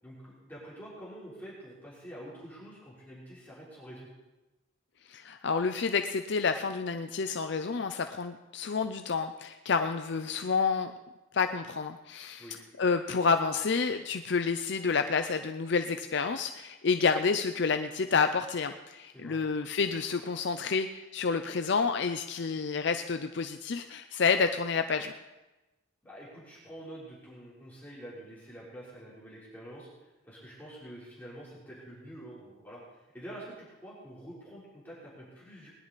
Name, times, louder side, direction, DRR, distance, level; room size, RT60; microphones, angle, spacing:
voice 1, 0.0-4.1 12.4-12.6 19.1-19.4 26.0-29.9 30.2-35.7, right 1 dB, 10° left, -8 dB, 3.6 m, -47 dB
voice 2, 5.1-10.9 11.3-12.5 12.8-25.1, left 5 dB, 60° left, 7 dB, 0.5 m, -29 dB
20.0 x 10.5 x 4.1 m, 1.1 s
head